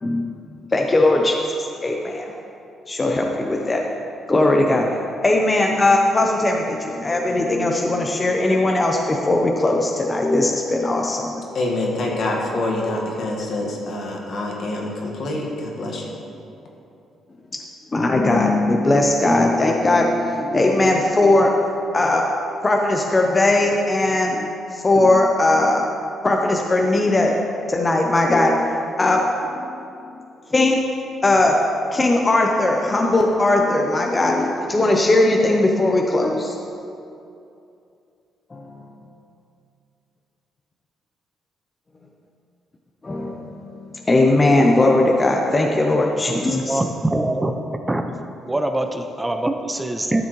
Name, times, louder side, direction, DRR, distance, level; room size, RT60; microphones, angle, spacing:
voice 1, 0.7-2.3 2.9-3.8 4.3-11.3 17.9-21.5 21.9-22.2 22.6-25.8 26.2-27.3 27.7-29.6 30.5-30.8 31.2-31.6 31.9-36.6 38.5-38.8 43.0-43.7 44.1-46.8, left 2 dB, 25° left, 0 dB, 0.7 m, -19 dB
voice 2, 11.5-16.1, left 2 dB, 60° left, -1 dB, 1.7 m, -26 dB
voice 3, 46.3-47.6 47.9-48.0 48.5-50.2, right 1 dB, 15° right, 5 dB, 0.5 m, -23 dB
12.5 x 7.2 x 3.2 m, 2.6 s
cardioid pair, 90°, 0 cm